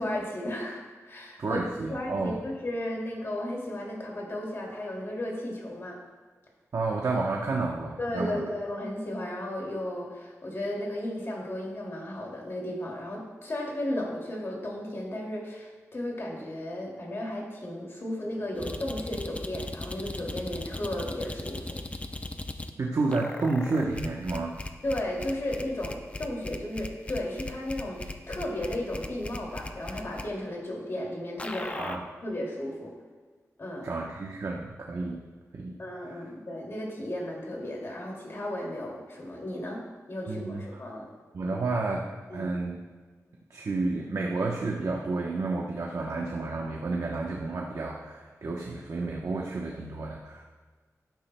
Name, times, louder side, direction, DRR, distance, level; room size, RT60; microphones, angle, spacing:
voice 1, 0.0-6.0 8.0-21.8 24.8-32.9 33.6-33.9 35.8-41.1 41.5-41.6 42.3-42.5, left 1 dB, 45° left, -2 dB, 2.4 m, -34 dB
voice 2, 1.4-2.4 6.7-8.5 22.8-24.6 31.8-32.0 33.8-35.2 35.5-35.8 36.0-36.2 40.3-40.6 41.3-42.0 42.3-42.8 43.5-50.5, right 3 dB, 65° right, -2 dB, 0.9 m, -30 dB
sound 1, 18.6-22.7 23.1-30.3 31.4-32.0, left 2 dB, 20° left, 0.5 m, -38 dB
12.0 x 10.0 x 2.2 m, 1.4 s
wide cardioid pair, 120°, 6 cm